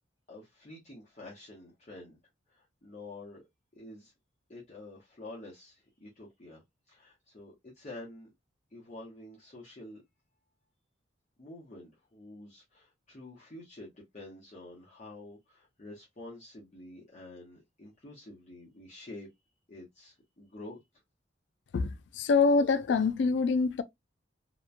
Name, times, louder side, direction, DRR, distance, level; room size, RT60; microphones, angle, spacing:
voice 1, 0.3-2.2 2.5-3.4 3.7-4.1 4.5-8.3 8.7-10.0 11.4-19.3 19.7-20.8, left 2 dB, 35° left, 0.7 m, -48 dB
voice 2, 21.7-23.8, left 4 dB, 70° left, 0.3 m, -25 dB
2.9 x 2.1 x 2.3 m
head